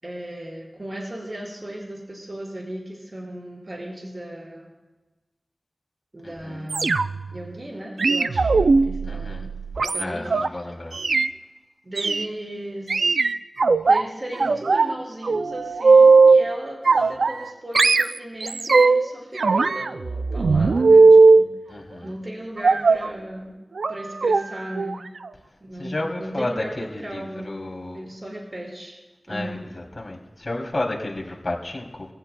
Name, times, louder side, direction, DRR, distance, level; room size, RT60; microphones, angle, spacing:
voice 1, 0.0-4.7 6.1-6.9 7.3-9.5 9.8-10.7 11.8-13.1 13.9-21.5 22.0-23.5 23.9-25.0 25.6-27.6 27.9-29.0 29.3-29.6, right 1 dB, 40° right, -4 dB, 5.2 m, -36 dB
voice 2, 6.2-6.7 9.0-9.5 10.0-11.0 21.7-22.1 25.8-28.0 29.3-32.1, left 2 dB, 45° left, -1 dB, 2.9 m, -31 dB
sound 1, 6.7-7.3 8.0-10.5 10.9-11.3 12.0-12.3 12.9-14.0 14.4-14.9 15.2-16.5 16.8-17.5 17.7-19.1 19.4-21.5 22.6-23.1 23.8-23.9 24.2-24.4 24.7-24.9 25.2-25.3, right 4 dB, 90° right, 0.4 m, -17 dB
25.5 x 16.5 x 2.2 m, 1.2 s
wide cardioid pair, 55°, 0 cm